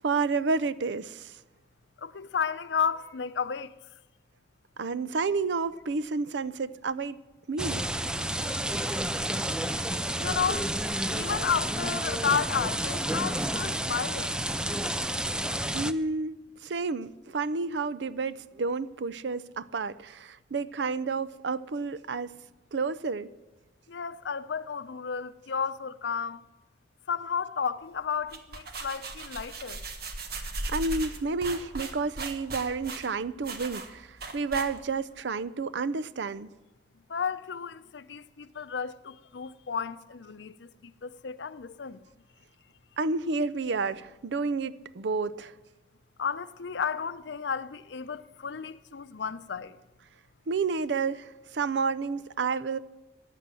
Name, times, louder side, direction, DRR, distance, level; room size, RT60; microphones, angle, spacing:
voice 1, 0.0-1.4 4.8-7.2 7.5-7.9 15.7-16.4 16.6-22.3 22.7-23.3 30.7-36.5 43.0-45.5 50.5-52.8, right 4 dB, 80° right, 0.5 m, -30 dB
voice 2, 2.0-3.7 10.2-10.7 11.1-14.3 23.9-26.4 27.1-29.8 37.1-42.0 46.2-49.8, left 6 dB, 85° left, 0.6 m, -32 dB
sound 1, 7.6-15.9, right 1 dB, 5° right, 0.4 m, -30 dB
sound 2, 28.1-35.1, right 3 dB, 60° right, 1.5 m, -38 dB
15.0 x 10.0 x 7.6 m
head